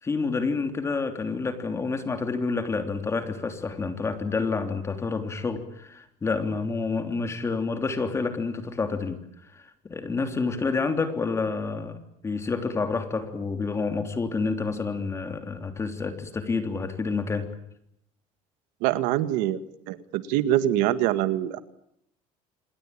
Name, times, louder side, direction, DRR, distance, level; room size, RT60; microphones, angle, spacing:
voice 1, 0.0-9.2 9.5-12.0 12.2-17.5, left 4 dB, 20° left, 7 dB, 3.2 m, -28 dB
voice 2, 18.8-19.6 19.9-21.6, right 13 dB, 90° right, 12 dB, 1.9 m, -24 dB
28.0 x 21.0 x 8.8 m, 0.75 s
cardioid pair, 140°, 13 cm